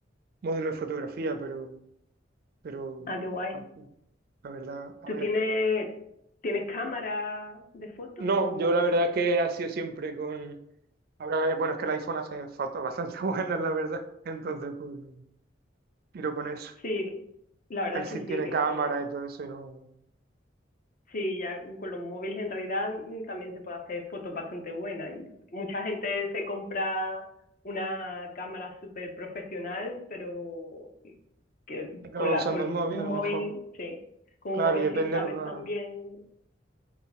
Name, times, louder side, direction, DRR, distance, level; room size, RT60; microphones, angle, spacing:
voice 1, 0.4-1.7 2.6-3.1 3.5-3.6 4.4-5.2 8.2-10.6 11.2-15.2 16.1-16.7 17.9-19.8 32.1-33.4 34.6-35.6, right 3 dB, 55° right, 8 dB, 0.4 m, -30 dB
voice 2, 3.0-3.6 5.1-5.9 6.4-8.9 16.8-17.1 17.7-18.9 21.1-27.2 27.6-31.1 31.7-34.0 34.4-36.2, left 2 dB, 45° left, 3 dB, 0.6 m, -33 dB
4.0 x 2.3 x 4.0 m, 0.76 s
head